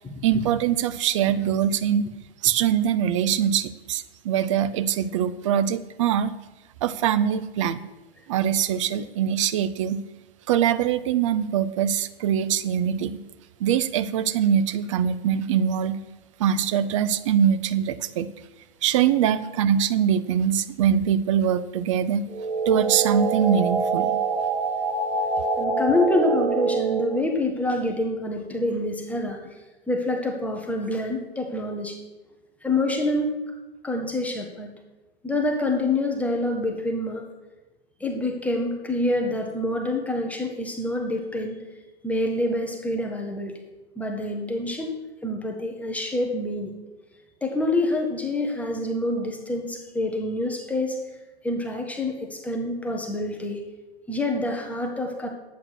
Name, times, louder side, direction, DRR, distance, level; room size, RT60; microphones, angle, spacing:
voice 1, 0.2-2.1 2.4-6.4 6.8-7.8 8.3-10.0 10.5-13.2 13.6-16.0 16.4-18.3 18.8-22.3 22.7-24.2, right 9 dB, 30° right, 14 dB, 0.5 m, -23 dB
sound 1, 22.3-27.2, right 4 dB, 50° right, 2.7 m, -25 dB
voice 2, 25.6-29.6 29.9-32.0 32.6-33.3 33.8-34.7 35.2-37.2 38.0-41.6 42.0-43.6 44.0-44.9 45.2-46.7 47.4-51.0 51.4-53.7 54.1-55.3, left 2 dB, 5° left, 1 dB, 1.0 m, -26 dB
10.5 x 8.3 x 6.3 m, 1.1 s
figure-of-eight pair, 115°, 32 cm